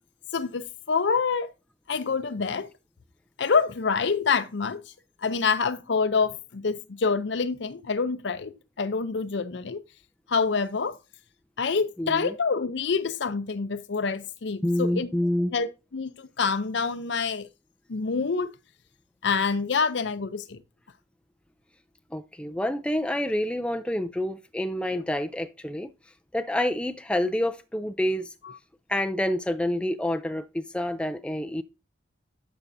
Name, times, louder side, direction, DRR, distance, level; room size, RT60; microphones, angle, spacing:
voice 1, 0.3-1.5 1.9-2.7 3.4-4.8 5.2-9.8 10.3-11.0 11.6-15.1 15.5-17.5 17.9-18.5 19.2-20.6, left 5 dB, 70° left, 0.6 m, -26 dB
voice 2, 12.0-12.3 14.6-15.5 22.1-25.9 26.3-28.3 28.9-31.6, left 1 dB, 5° left, 0.4 m, -28 dB
11.0 x 5.9 x 2.6 m
head